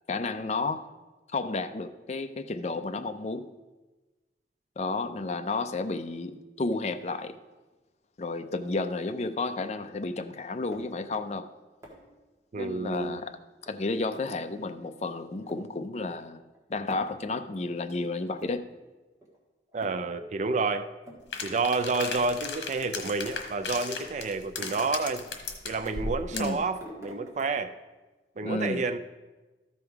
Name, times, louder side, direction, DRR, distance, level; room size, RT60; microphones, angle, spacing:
voice 1, 0.1-0.9 1.3-3.5 4.8-7.4 8.2-11.5 12.5-13.3 13.7-16.4 16.7-18.7 26.3-26.6 28.4-28.8, left 3 dB, 40° left, 8 dB, 0.5 m, -32 dB
sound 1, 10.7-11.0 11.8-12.2 12.9-13.3 13.7-13.8 14.1-14.4 14.8-14.9 15.3-15.7 16.2-16.3 16.5-17.2 17.7-17.8 18.3-18.8 19.2-19.4 19.7-20.1 20.5-20.6 21.1-21.2 21.6-22.6 23.3-23.5 24.0-24.1 24.6-26.3 26.5-27.4, right 1 dB, 15° right, 1.6 m, -48 dB
voice 2, 12.5-13.2 19.7-20.9 21.4-25.3 25.6-27.7 28.4-29.0, right 3 dB, 40° right, 8 dB, 0.4 m, -29 dB
sound 2, 21.3-26.6, left 4 dB, 75° left, 1.3 m, -36 dB
13.5 x 5.3 x 4.6 m, 1.2 s
head